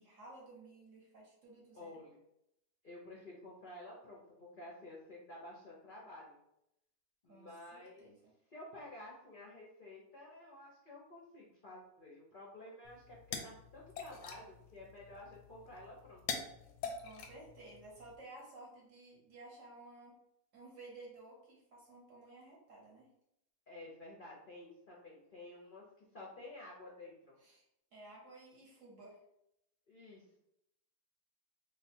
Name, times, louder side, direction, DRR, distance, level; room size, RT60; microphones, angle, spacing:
voice 1, 0.0-1.9 7.3-8.2 16.8-20.2 20.5-23.1 27.4-27.6 27.9-29.2, right 2 dB, 55° right, -4 dB, 1.3 m, -55 dB
voice 2, 1.7-2.2 2.8-6.4 7.2-8.1 8.5-16.3 23.7-27.4 29.9-30.4, left 1 dB, 55° left, -4 dB, 0.5 m, -52 dB
sound 1, 12.8-18.2, left 6 dB, 90° left, 1.2 m, -46 dB
3.2 x 2.1 x 4.2 m, 0.80 s
omnidirectional pair, 1.8 m